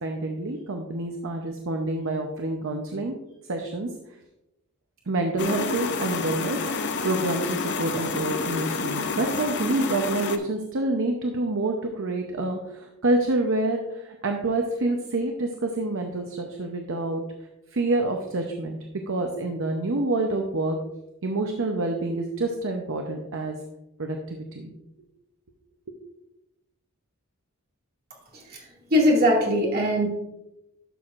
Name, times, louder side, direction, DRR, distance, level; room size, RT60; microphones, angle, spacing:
voice 1, 0.0-3.1 3.5-3.9 5.1-17.2 17.7-18.8 19.1-20.8 21.2-23.6 24.0-24.7, right 2 dB, 60° right, 3 dB, 0.7 m, -27 dB
sound 1, 5.4-10.4, left 4 dB, 55° left, 0.7 m, -29 dB
voice 2, 28.3-30.1, equal, 45° right, -2 dB, 2.2 m, -22 dB
11.5 x 6.2 x 2.5 m, 0.92 s
head